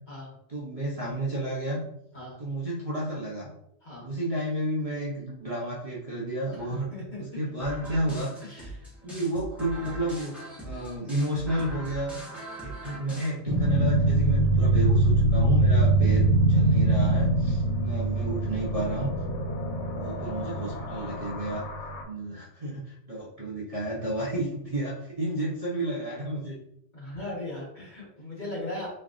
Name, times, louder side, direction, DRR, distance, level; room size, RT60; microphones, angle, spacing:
voice 1, 0.5-1.8 2.4-3.5 4.0-6.9 7.2-8.7 9.0-12.1 12.6-19.1 19.9-21.6 22.0-26.6, right 1 dB, 35° right, -6 dB, 0.8 m, -31 dB
voice 2, 6.5-7.2 8.5-8.9 26.9-28.9, left 2 dB, 40° left, -5 dB, 1.5 m, -38 dB
sound 1, 7.6-13.3, right 1 dB, ahead, 1.2 m, -41 dB
sound 2, 13.5-22.0, right 2 dB, 75° left, 1.0 m, -24 dB
3.9 x 3.2 x 2.5 m, 0.75 s
omnidirectional pair, 1.2 m